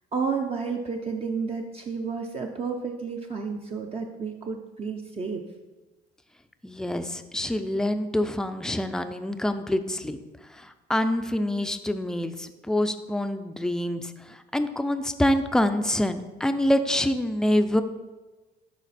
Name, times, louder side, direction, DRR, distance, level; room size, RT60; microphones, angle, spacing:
voice 1, 0.1-5.4, right 5 dB, 35° right, 2 dB, 0.7 m, -31 dB
voice 2, 6.6-10.2 10.6-17.8, left 1 dB, 5° left, 9 dB, 0.5 m, -26 dB
11.5 x 4.2 x 4.2 m, 1.2 s
cardioid pair, 110°, 17 cm